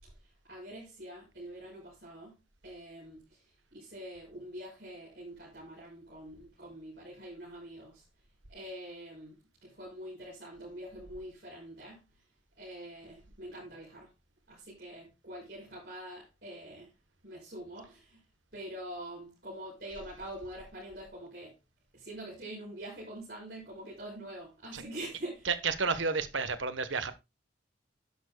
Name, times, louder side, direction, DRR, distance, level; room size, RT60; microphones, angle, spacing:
voice 1, 0.0-2.3 2.6-8.0 8.5-12.0 12.6-14.1 14.5-16.9 17.2-18.2 18.5-21.5 21.9-25.5, right 1 dB, 55° right, 6.4 m, -45 dB
voice 2, 25.4-27.1, right 4 dB, 85° right, 1.2 m, -31 dB
11.5 x 11.0 x 2.3 m
head